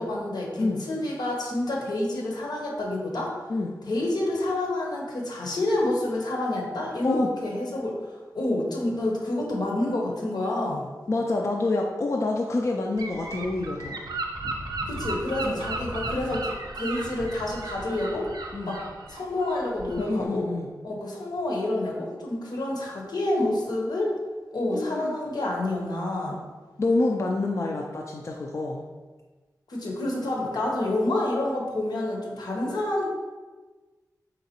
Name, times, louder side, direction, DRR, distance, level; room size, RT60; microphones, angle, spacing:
voice 1, 0.0-3.3 3.9-8.0 8.3-10.9 14.9-18.3 18.7-18.8 19.1-20.4 20.8-24.1 24.5-26.4 29.7-33.1, left 1 dB, 80° left, -1 dB, 0.8 m, -28 dB
voice 2, 11.1-14.0 15.4-15.6 18.5-18.8 20.0-20.7 24.7-25.2 26.8-28.8, left 2 dB, 45° left, 0 dB, 0.3 m, -27 dB
Gull seagull / Wind, 13.0-20.3, right 2 dB, 70° right, 0.5 m, -35 dB
3.9 x 3.5 x 2.9 m, 1.3 s
wide cardioid pair, 105°, 7 cm